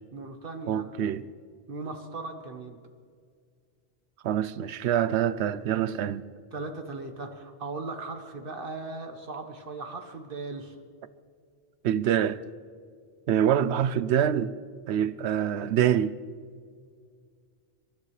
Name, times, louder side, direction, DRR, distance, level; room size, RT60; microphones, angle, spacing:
voice 1, 0.1-0.9 1.7-2.8 6.5-10.8, right 3 dB, 55° right, 1.5 m, -38 dB
voice 2, 0.7-1.3 4.2-6.2 11.8-12.4 13.3-14.5 14.9-16.2, right 10 dB, 80° right, 0.9 m, -25 dB
26.0 x 12.0 x 3.3 m
omnidirectional pair, 1.1 m